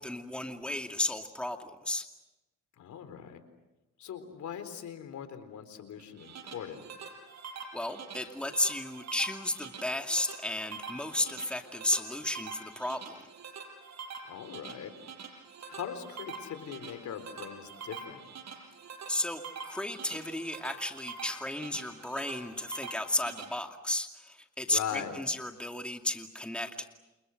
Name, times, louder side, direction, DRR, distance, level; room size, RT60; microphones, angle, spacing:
voice 1, 0.0-2.1 7.6-13.2 19.1-26.9, left 1 dB, 5° left, 4 dB, 2.4 m, -33 dB
voice 2, 2.8-3.4 4.0-6.8 14.3-14.9 15.7-18.2 24.7-25.2, left 8 dB, 70° left, 10 dB, 4.0 m, -40 dB
sound 1, 6.0-23.4, right 5 dB, 60° right, 6.1 m, -45 dB
29.5 x 29.0 x 6.5 m, 1.0 s
cardioid pair, 90°, 30 cm